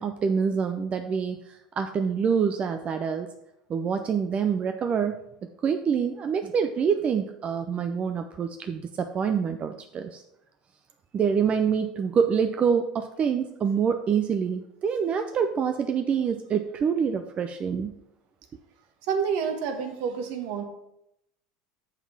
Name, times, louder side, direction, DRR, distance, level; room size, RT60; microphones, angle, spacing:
voice 1, 0.0-3.3 3.7-5.2 5.6-10.2 11.1-17.9, right 6 dB, 35° right, 7 dB, 0.6 m, -26 dB
voice 2, 19.0-20.6, right 6 dB, 65° right, 5 dB, 1.4 m, -28 dB
7.2 x 5.7 x 6.0 m, 0.83 s
hypercardioid pair, 85°, 4 cm